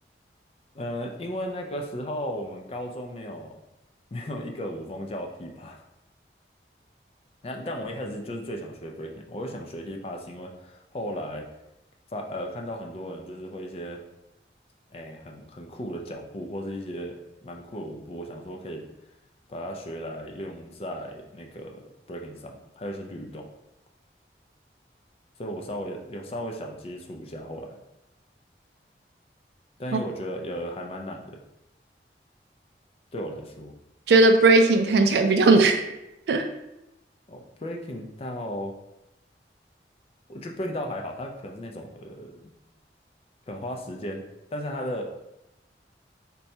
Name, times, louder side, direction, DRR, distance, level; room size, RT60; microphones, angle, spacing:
voice 1, 0.7-3.6 4.1-5.8 7.4-11.5 12.1-14.0 14.9-18.9 19.5-21.8 22.1-23.5 25.4-27.8 29.8-31.4 33.1-33.7 37.3-38.7 40.3-42.5 43.5-44.2 44.5-45.1, equal, 35° left, 2 dB, 0.3 m, -35 dB
voice 2, 34.1-35.8 36.3-36.5, right 3 dB, 75° right, 6 dB, 0.3 m, -18 dB
2.7 x 2.2 x 4.1 m, 0.91 s
head